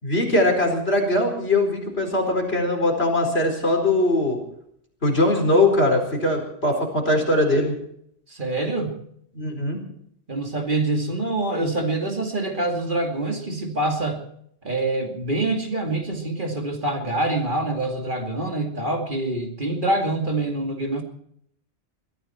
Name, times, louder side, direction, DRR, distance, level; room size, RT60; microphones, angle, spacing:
voice 1, 0.0-4.4 5.0-7.7 9.3-9.8, left 1 dB, 65° left, 3 dB, 4.7 m, -21 dB
voice 2, 8.3-8.9 10.3-14.2 14.6-21.0, right 2 dB, 45° right, 2 dB, 2.7 m, -25 dB
22.5 x 14.0 x 4.5 m, 0.69 s
omnidirectional pair, 1.1 m